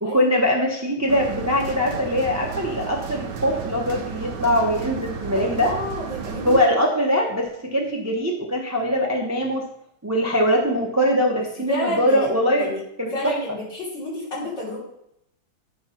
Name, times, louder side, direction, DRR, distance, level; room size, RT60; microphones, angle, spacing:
voice 1, 0.0-5.7 6.4-9.6 10.0-12.7 13.0-13.4, equal, 15° right, 0 dB, 0.5 m, -22 dB
sound 1, 1.1-6.6, right 6 dB, 65° right, 1.3 m, -33 dB
voice 2, 5.4-6.6 11.7-12.3 12.6-12.8 13.1-14.8, equal, 65° left, -7 dB, 4.1 m, -30 dB
9.4 x 3.9 x 5.8 m, 0.76 s
omnidirectional pair, 2.1 m